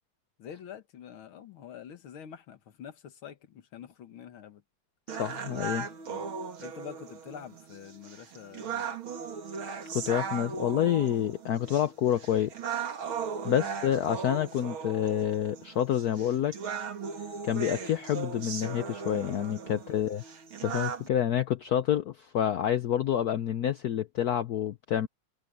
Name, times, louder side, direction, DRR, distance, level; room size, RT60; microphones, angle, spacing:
voice 1, 0.4-4.6 6.1-6.3 6.6-8.9 13.5-13.8 19.9-20.0, left 8 dB, 90° left, 2.3 m, -46 dB
voice 2, 5.1-5.9 9.9-12.5 13.4-16.6 17.4-20.2 20.6-25.1, left 10 dB, 65° left, 1.0 m, -28 dB
sound 1, 5.1-21.1, right 6 dB, 85° right, 2.9 m, -38 dB
omnidirectional pair, 2.2 m